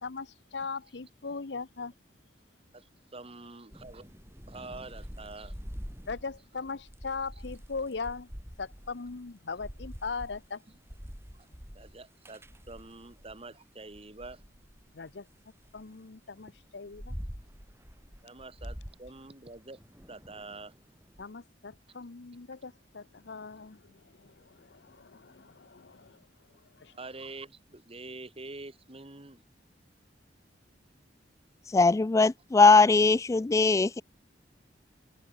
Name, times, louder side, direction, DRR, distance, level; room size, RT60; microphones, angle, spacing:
voice 1, 0.0-1.9 6.1-8.3 8.6-10.6 14.9-15.3 15.7-17.2 21.2-26.3 26.7-26.9, left 4 dB, 75° left, 0.8 m, -39 dB
voice 2, 3.1-4.1 4.5-5.6 10.7-10.8 11.3-11.5 11.7-14.4 18.2-19.8 20.1-20.7 26.9-29.4, right 3 dB, 35° right, 2.2 m, -46 dB
Thunder / Rain, 3.7-13.4 13.9-15.8 16.4-21.2, equal, 15° right, 7.8 m, -46 dB
voice 3, 31.7-34.0, left 3 dB, 15° left, 0.3 m, -20 dB
open air
head